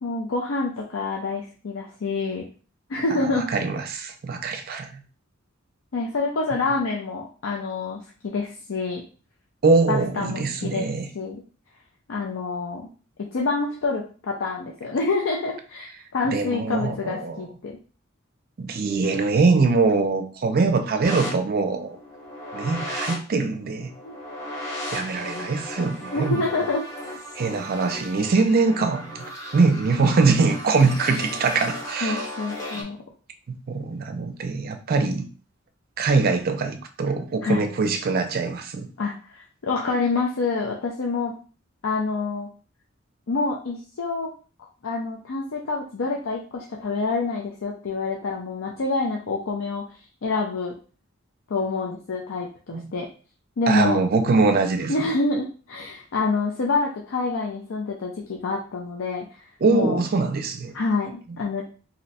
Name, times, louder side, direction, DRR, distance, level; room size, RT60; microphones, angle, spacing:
voice 1, 0.0-2.4 2.9-3.5 5.9-8.0 8.2-9.0 9.9-10.9 11.1-11.4 12.1-12.9 13.3-17.8 24.0-24.1 26.1-26.8 32.0-33.0 37.4-37.7 39.0-41.3 41.8-42.5 43.3-44.3 44.8-49.8 50.2-50.7 51.5-53.1 53.6-54.0 54.9-59.4 59.7-60.0 60.7-61.6, left 3 dB, 70° left, 0.5 m, -27 dB
voice 2, 3.1-5.0 9.6-11.1 16.3-17.4 18.6-22.0 22.5-23.9 24.9-26.6 27.4-32.3 33.7-35.3 36.0-38.9 52.7-52.8 53.7-55.1 59.6-60.7, right 4 dB, 50° right, 0.4 m, -23 dB
sound 1, 21.0-32.8, equal, 15° left, 0.8 m, -35 dB
2.7 x 2.1 x 4.0 m
head